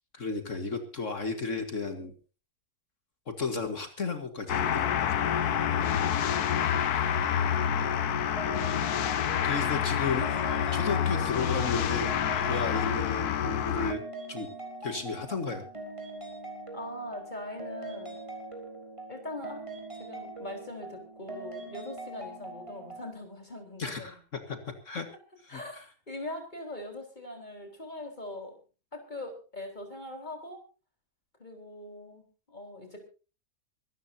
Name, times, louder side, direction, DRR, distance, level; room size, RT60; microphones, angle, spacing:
voice 1, 0.1-2.1 3.3-5.5 9.4-10.4 10.7-12.1 12.4-14.0 14.3-14.5 14.8-15.7 23.8-24.6 24.9-25.1 25.4-25.8, left 4 dB, 55° left, 7 dB, 2.0 m, -34 dB
sound 1, 4.5-13.9, left 9 dB, 90° left, 1.5 m, -28 dB
voice 2, 7.3-7.8 16.7-18.2 19.1-19.7 20.0-24.2 25.5-28.6 28.9-30.6 31.4-33.0, left 1 dB, 30° left, 4 dB, 4.4 m, -42 dB
sound 2, 8.4-23.1, right 2 dB, 20° right, 3.9 m, -42 dB
24.5 x 13.5 x 2.8 m, 0.34 s
omnidirectional pair, 1.6 m